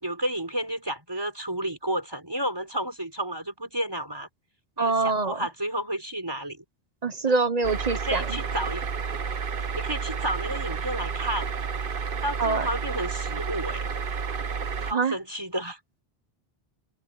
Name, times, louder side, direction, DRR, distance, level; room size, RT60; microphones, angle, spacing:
voice 1, 0.0-4.3 4.8-6.6 7.3-7.4 8.0-8.8 9.8-11.5 12.2-13.8 14.8-15.8, right 1 dB, 25° right, 5.1 m, -31 dB
voice 2, 4.8-5.5 7.0-8.4 12.4-12.7 14.9-15.2, right 4 dB, 40° right, 1.0 m, -25 dB
sound 1, 7.6-14.9, right 5 dB, 60° right, 1.2 m, -31 dB
omnidirectional pair, 1.0 m